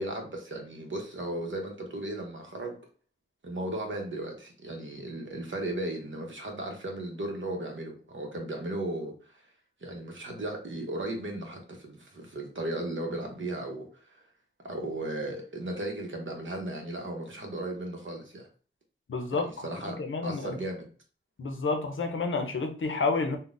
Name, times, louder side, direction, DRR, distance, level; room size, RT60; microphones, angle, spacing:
voice 1, 0.0-2.8 3.4-9.4 9.8-14.2 14.6-18.5 19.3-20.0 20.2-20.9, right 1 dB, 70° right, 0.8 m, -36 dB
voice 2, 19.1-20.6 21.4-23.4, left 3 dB, 75° left, 0.6 m, -30 dB
3.7 x 2.1 x 2.4 m
wide cardioid pair, 55°, 21 cm